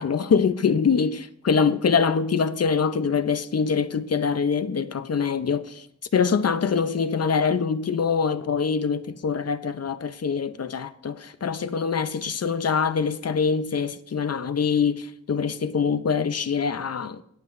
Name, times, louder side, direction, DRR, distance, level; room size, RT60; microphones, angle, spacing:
voice 1, 0.0-5.9 6.1-17.2, left 6 dB, 50° left, 0.6 m, -24 dB
18.5 x 7.8 x 2.5 m
wide cardioid pair, 95°, 31 cm